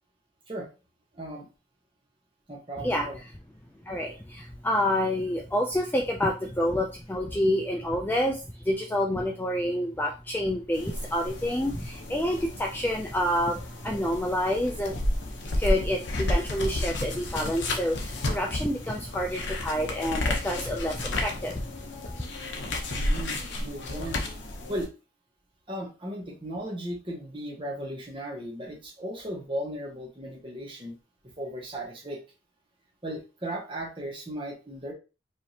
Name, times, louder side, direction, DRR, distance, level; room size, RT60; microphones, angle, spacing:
voice 1, 1.1-1.5 2.5-3.2 22.9-24.2 24.7-24.9 25.7-31.0 31.4-32.2 33.0-34.9, right 1 dB, 25° right, -2 dB, 1.2 m, -36 dB
voice 2, 3.9-15.0 15.6-21.6 22.1-22.2, left 1 dB, 10° left, 0 dB, 0.4 m, -28 dB
sound 1, 10.7-24.9, left 1 dB, 65° left, 0.8 m, -32 dB
4.9 x 2.8 x 2.8 m, 0.31 s
head